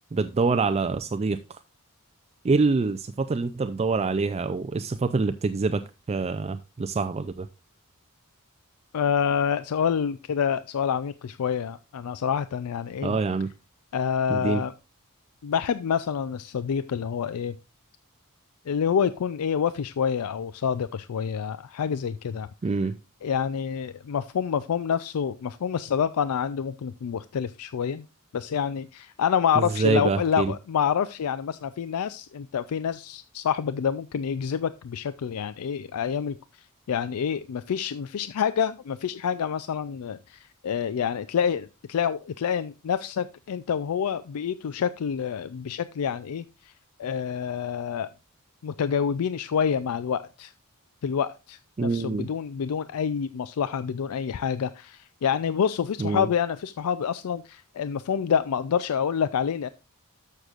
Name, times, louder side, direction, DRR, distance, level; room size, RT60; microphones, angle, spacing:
voice 1, 0.1-1.6 2.4-5.8 6.1-7.5 13.0-13.5 14.3-14.6 22.6-23.0 29.6-30.5 51.8-52.3 56.0-56.3, right 4 dB, 30° right, 0.4 m, -25 dB
voice 2, 8.9-13.2 13.9-14.7 15.4-17.6 18.7-22.5 23.2-28.0 28.3-46.7 47.0-48.1 48.6-50.5 51.0-59.7, left 7 dB, 75° left, 0.4 m, -27 dB
12.5 x 6.6 x 2.4 m
head